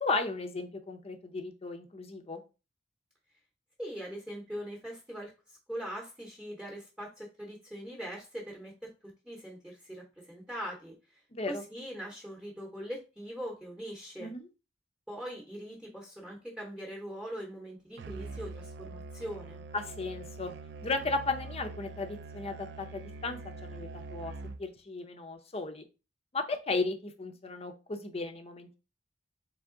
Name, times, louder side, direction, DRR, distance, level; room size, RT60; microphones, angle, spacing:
voice 1, 0.0-2.4 11.3-11.6 14.2-14.5 19.7-20.5 20.8-25.8 26.3-28.8, left 3 dB, 35° left, 7 dB, 0.6 m, -35 dB
voice 2, 3.8-11.2 11.5-14.3 15.1-19.6, equal, 5° right, -1 dB, 0.9 m, -42 dB
Musical instrument, 18.0-24.8, right 3 dB, 65° right, 0.4 m, -44 dB
3.5 x 3.5 x 3.7 m, 0.31 s
head